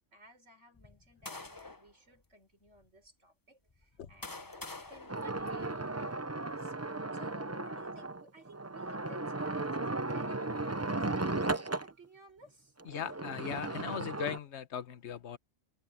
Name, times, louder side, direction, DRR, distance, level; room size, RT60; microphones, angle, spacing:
voice 1, 0.1-12.7, right 2 dB, 65° right, 6.3 m, -58 dB
sound 1, 0.8-1.9 2.7-2.8 3.7-6.0, left 3 dB, 20° left, 0.8 m, -47 dB
sound 2, 5.1-11.9 12.8-14.4, right 2 dB, 15° right, 0.6 m, -36 dB
voice 2, 12.9-15.4, left 8 dB, 60° left, 1.3 m, -39 dB
omnidirectional pair, 1.3 m